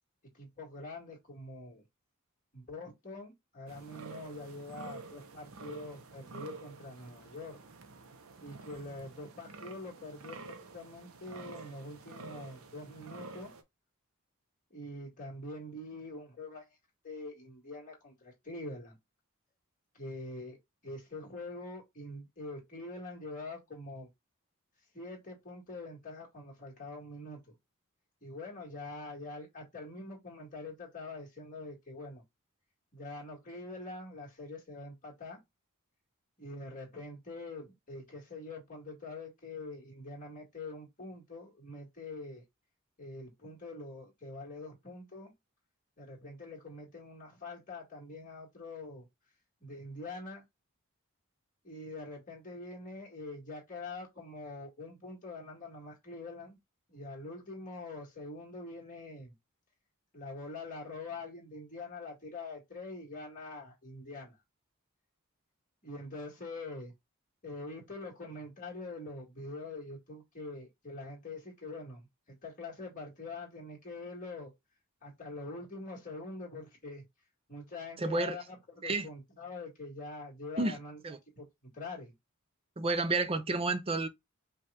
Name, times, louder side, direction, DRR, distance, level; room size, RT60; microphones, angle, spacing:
voice 1, 0.3-1.8 2.5-7.6 8.4-13.5 14.7-16.8 17.0-19.0 19.9-20.6 20.8-24.1 24.9-27.4 28.2-32.2 32.9-35.4 36.4-42.4 43.0-45.3 46.0-49.1 49.6-50.4 51.6-56.6 56.9-59.3 60.1-64.4 65.8-66.9 67.4-74.5 75.0-77.0 77.5-81.0 81.3-82.1, left 2 dB, 40° left, 2.1 m, -44 dB
sound 1, 3.7-13.6, right 3 dB, 75° right, 0.8 m, -49 dB
voice 2, 78.0-78.4 78.8-79.1 80.6-80.8 81.0-81.2 82.8-84.1, right 3 dB, 25° right, 0.6 m, -30 dB
5.3 x 2.5 x 3.4 m
head